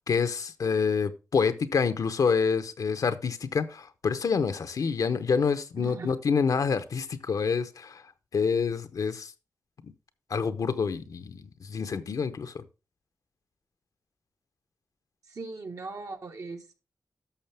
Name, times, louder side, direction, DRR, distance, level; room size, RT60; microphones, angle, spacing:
voice 1, 0.1-8.0 8.3-9.3 9.8-9.9 10.3-12.6, left 5 dB, 70° left, 0.8 m, -27 dB
voice 2, 5.8-6.1 15.3-16.8, right 3 dB, 65° right, 1.5 m, -39 dB
11.5 x 6.5 x 3.4 m
cardioid pair, 55°, 6 cm